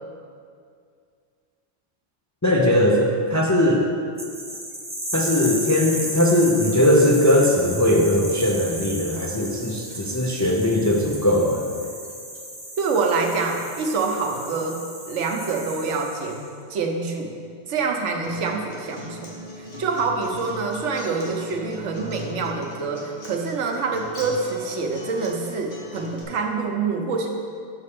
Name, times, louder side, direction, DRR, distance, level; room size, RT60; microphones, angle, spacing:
voice 1, 2.4-3.9 5.1-11.7, left 1 dB, 25° left, -1 dB, 0.4 m, -19 dB
sound 1, 4.2-16.5, right 1 dB, 15° right, 0.8 m, -34 dB
voice 2, 12.8-17.4 17.7-27.3, right 4 dB, 90° right, 3 dB, 1.1 m, -26 dB
Acoustic guitar, 18.2-26.2, left 2 dB, 45° left, 1.2 m, -39 dB
6.8 x 4.2 x 6.6 m, 2.2 s
omnidirectional pair, 1.2 m